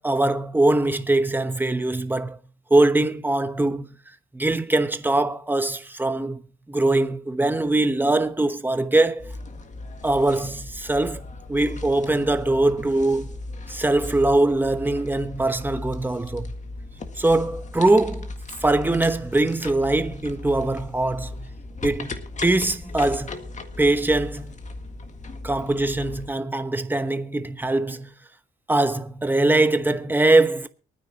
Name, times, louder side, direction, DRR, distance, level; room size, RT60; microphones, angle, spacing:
voice 1, 0.0-2.4 2.7-3.9 4.3-6.4 6.7-9.3 10.0-13.3 13.7-16.5 17.2-18.3 18.6-21.5 21.8-22.1 22.4-23.4 23.8-24.5 25.4-28.1 28.7-30.7, right 2 dB, 10° right, 1.0 m, -22 dB
sound 1, 9.2-26.3, left 2 dB, 35° left, 1.8 m, -37 dB
23.5 x 9.7 x 3.0 m
cardioid pair, 90°, 20 cm